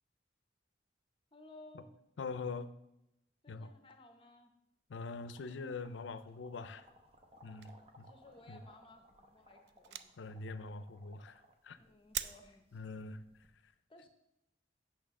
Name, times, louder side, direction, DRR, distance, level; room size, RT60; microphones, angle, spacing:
voice 1, 1.3-2.0 3.4-4.5 8.0-10.1 11.8-12.7 13.9-14.1, left 2 dB, 30° left, 5 dB, 0.8 m, -58 dB
voice 2, 2.2-2.7 3.5-3.7 4.9-6.9 7.4-7.7 8.0-8.1 8.5-8.6 10.2-11.8 12.7-13.2 13.6-13.7, left 4 dB, 90° left, 13 dB, 0.5 m, -43 dB
sound 1, 4.9-13.5, equal, 30° right, 0.8 m, -64 dB
sound 2, 7.2-8.1 8.6-8.8 9.0-9.2 9.7-10.4 11.0-11.2 11.5-11.8 12.1-12.3, right 11 dB, 65° right, 0.3 m, -43 dB
8.4 x 5.9 x 3.7 m, 0.86 s
head